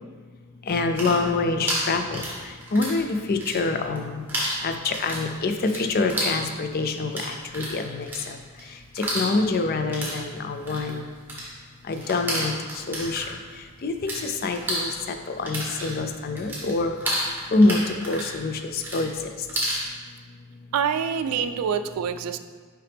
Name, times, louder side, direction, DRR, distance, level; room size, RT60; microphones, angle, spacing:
voice 1, 0.7-2.2 2.7-4.0 4.6-7.1 7.5-8.1 9.1-11.0 11.9-12.5 12.9-13.2 13.8-14.9 15.4-16.9 17.5-17.8 18.1-19.1, left 3 dB, 45° left, 7 dB, 0.4 m, -25 dB
sound 1, 0.7-3.0 3.3-4.0 4.3-14.2 14.5-19.8, right 1 dB, 10° right, 1.3 m, -31 dB
voice 2, 20.7-22.4, right 7 dB, 85° right, 10 dB, 0.3 m, -26 dB
5.6 x 5.0 x 3.4 m, 1.5 s
head